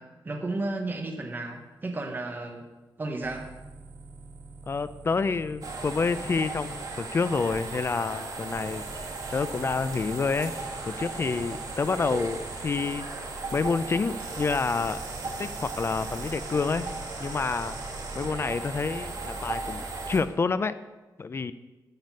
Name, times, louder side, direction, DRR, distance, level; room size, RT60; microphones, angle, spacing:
voice 1, 0.0-2.7 3.0-3.5, right 2 dB, 25° right, 3 dB, 1.1 m, -33 dB
sound 1, 3.2-7.0 8.5-12.8 14.2-18.3 19.5-19.7, right 3 dB, 85° right, 1.8 m, -46 dB
voice 2, 4.7-10.5 10.8-13.3 13.5-15.0 15.4-16.9 17.2-17.8 18.1-20.7 21.2-21.5, left 4 dB, 35° left, 13 dB, 0.4 m, -28 dB
sound 2, 5.6-20.2, right 3 dB, 50° right, 1.7 m, -36 dB
10.5 x 7.9 x 5.3 m, 1.1 s
wide cardioid pair, 155°, 8 cm